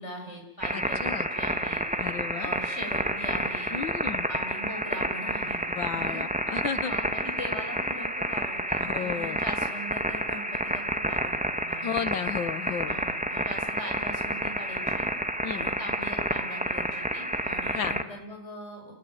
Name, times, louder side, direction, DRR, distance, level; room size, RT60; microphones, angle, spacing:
voice 1, 0.0-1.0 1.3-1.8 2.4-3.7 4.3-5.6 5.9-6.2 6.8-12.3 12.9-15.1 15.5-19.0, equal, 35° left, 2 dB, 6.9 m, -41 dB
sound 1, 0.6-18.0, right 1 dB, 5° right, 1.2 m, -30 dB
voice 2, 0.7-1.3 2.0-2.5 3.7-4.3 5.8-6.9 8.8-9.4 11.8-13.0 15.4-15.7 17.7-17.9, left 7 dB, 85° left, 12 dB, 2.0 m, -33 dB
28.5 x 20.0 x 9.5 m, 0.92 s
omnidirectional pair, 2.1 m